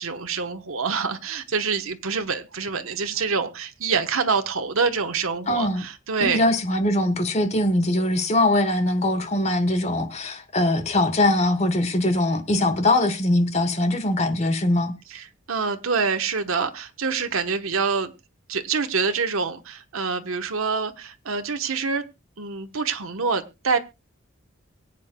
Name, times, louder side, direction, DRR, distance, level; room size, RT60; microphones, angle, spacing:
voice 1, 0.0-6.4 15.1-18.1 18.5-22.1 22.4-23.8, right 5 dB, 90° right, 1.1 m, -26 dB
voice 2, 5.5-5.8 6.2-15.0, left 1 dB, 30° left, 1.2 m, -22 dB
24.0 x 8.4 x 2.2 m
head